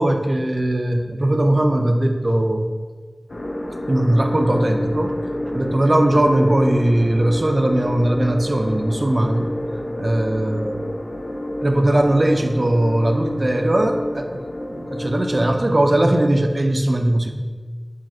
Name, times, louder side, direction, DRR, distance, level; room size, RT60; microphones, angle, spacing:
voice 1, 0.0-2.7 3.9-5.2 5.5-9.5 10.0-10.9 11.6-14.4 14.7-17.3, right 1 dB, 50° right, 5 dB, 0.4 m, -19 dB
sound 1, 3.3-15.4, left 1 dB, 75° left, 0.4 m, -28 dB
4.9 x 2.4 x 4.2 m, 1.5 s
wide cardioid pair, 55°, 0 cm